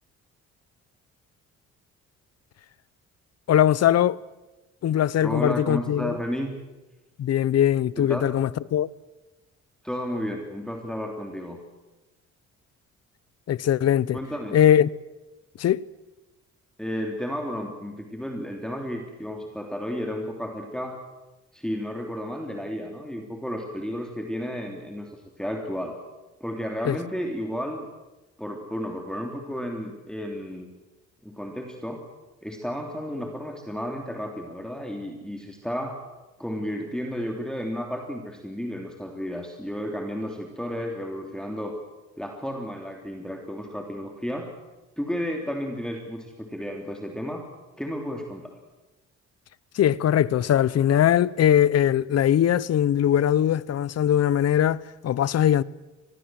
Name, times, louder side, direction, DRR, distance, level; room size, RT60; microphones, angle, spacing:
voice 1, 3.5-4.2 4.8-6.2 7.2-8.9 13.5-14.2 14.5-14.9 15.6-15.8 26.8-27.0 49.7-55.6, left 10 dB, 55° left, 0.8 m, -21 dB
voice 2, 5.2-6.6 8.0-8.5 9.8-11.6 14.1-14.6 16.8-21.0 21.5-26.0 26.4-27.9 28.4-30.7 31.2-32.0 32.4-36.0 36.4-41.8 42.2-44.5 45.0-47.5 47.8-48.5, equal, ahead, 3.3 m, -32 dB
25.0 x 20.0 x 7.7 m
cardioid pair, 90°, 30 cm